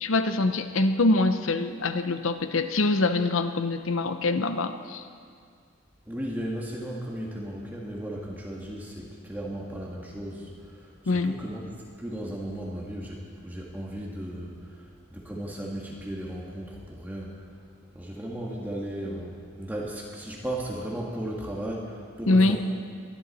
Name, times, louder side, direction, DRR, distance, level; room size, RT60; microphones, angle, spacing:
voice 1, 0.0-5.1 11.1-11.4 22.3-22.6, left 2 dB, 70° left, 9 dB, 0.8 m, -24 dB
voice 2, 6.1-11.7 12.0-17.3 17.9-22.6, right 1 dB, 10° right, -3 dB, 1.6 m, -35 dB
22.5 x 11.5 x 4.2 m, 2.1 s
head